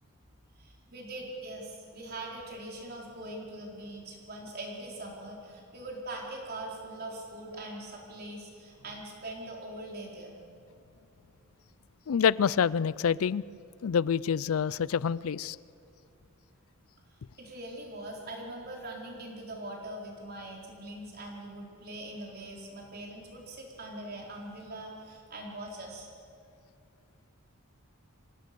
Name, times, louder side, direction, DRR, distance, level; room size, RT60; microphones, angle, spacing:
voice 1, 0.6-10.4 17.4-26.1, right 1 dB, 45° right, -1 dB, 4.3 m, -42 dB
voice 2, 12.1-13.4 13.8-15.6, left 7 dB, 75° left, 21 dB, 0.4 m, -27 dB
26.0 x 16.5 x 6.9 m, 2.4 s
head